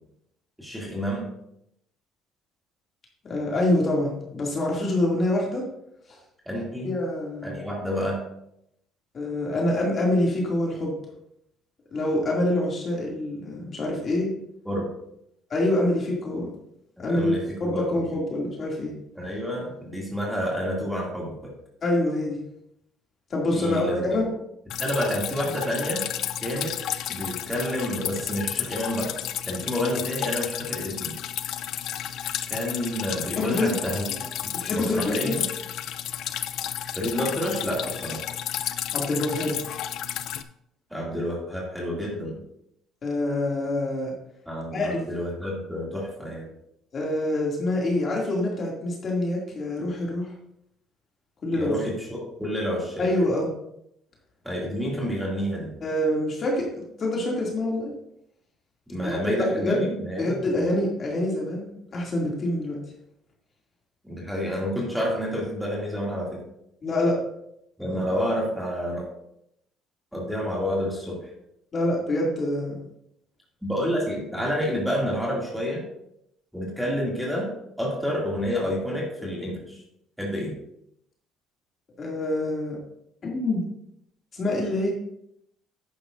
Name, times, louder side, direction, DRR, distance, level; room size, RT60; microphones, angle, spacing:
voice 1, 0.6-1.3 6.5-6.9 7.4-8.2 14.6-14.9 17.0-18.0 19.2-21.5 23.5-24.3 24.8-26.1 26.4-26.8 27.1-29.1 29.5-31.2 32.5-35.5 37.0-38.2 40.9-42.4 44.5-46.5 51.5-53.1 54.4-55.7 58.9-60.4 64.0-66.4 67.8-69.0 70.1-71.3 73.6-75.8 76.5-79.8 80.2-80.6, equal, ahead, -3 dB, 2.5 m, -29 dB
voice 2, 3.3-5.6 6.1-6.2 6.8-7.6 9.1-10.9 11.9-14.3 15.5-16.5 17.0-17.3 17.6-18.9 21.8-22.4 23.3-24.3 33.4-33.8 34.5-35.4 38.9-39.6 43.0-44.1 44.7-45.0 46.9-50.3 51.4-51.7 53.0-53.5 55.8-57.9 59.0-59.9 60.2-62.8 66.8-67.2 67.8-68.0 71.7-72.8 82.0-82.8 83.2-83.7 84.3-84.9, left 1 dB, 35° left, -2 dB, 2.5 m, -26 dB
Drip, 24.7-40.4, left 11 dB, 65° left, 0.5 m, -32 dB
11.0 x 9.5 x 2.6 m, 0.77 s
cardioid pair, 140°, 0 cm